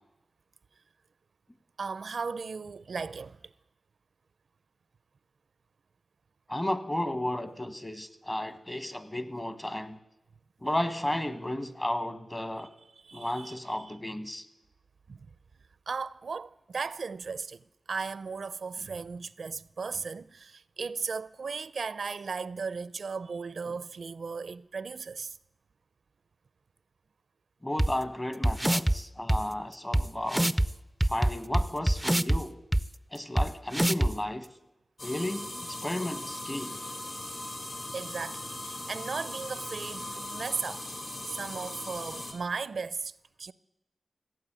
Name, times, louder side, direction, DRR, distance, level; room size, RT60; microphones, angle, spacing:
voice 1, 1.8-3.5 13.0-14.0 15.1-15.3 15.9-25.4 37.9-40.9 41.3-43.5, right 5 dB, 75° right, 0.4 m, -36 dB
voice 2, 6.5-10.0 10.6-12.7 13.1-14.4 27.6-30.5 31.0-32.6 33.1-34.5 35.0-36.8, left 1 dB, 25° left, 1.4 m, -33 dB
sound 1, 27.8-27.9 28.4-28.9 29.3-29.4 29.9-30.0 30.3-30.7 31.0-32.4 32.7-32.8 33.4-33.5 33.7-34.1, right 1 dB, 10° right, 0.4 m, -23 dB
sound 2, 35.0-42.3, left 1 dB, 50° left, 3.0 m, -39 dB
16.0 x 8.6 x 8.8 m
wide cardioid pair, 80°, 0 cm